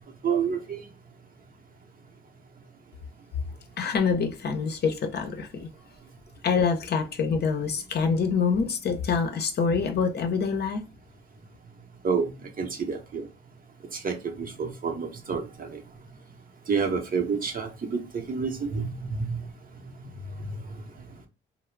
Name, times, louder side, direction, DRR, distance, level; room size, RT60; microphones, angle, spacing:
voice 1, 0.2-0.8 12.0-12.3 12.6-13.3 13.9-15.8 16.7-19.4 20.0-20.1 20.4-20.6, right 5 dB, 45° right, 0.8 m, -29 dB
voice 2, 3.8-5.7 6.4-10.8, left 5 dB, 55° left, 0.6 m, -26 dB
2.3 x 2.0 x 3.2 m
supercardioid pair, 65°, 20 cm